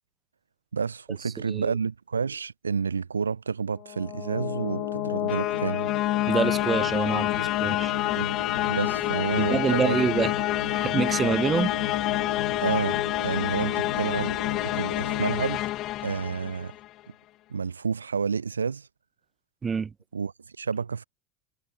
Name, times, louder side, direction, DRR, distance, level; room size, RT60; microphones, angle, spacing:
voice 1, 0.7-5.9 8.2-8.3 8.7-10.0 12.6-14.4 14.6-15.6 16.0-16.7 17.5-18.9 20.1-20.3 20.6-21.0, right 5 dB, 85° right, 0.3 m, -29 dB
sound 1, 3.8-16.9, left 16 dB, 45° left, 1.0 m, -28 dB
sound 2, 4.3-15.3, left 5 dB, 85° left, 0.4 m, -36 dB
voice 2, 6.3-7.9 9.4-10.3 10.7-11.8 19.6-19.9, right 5 dB, 25° right, 0.7 m, -26 dB
figure-of-eight pair, 80°, 0 cm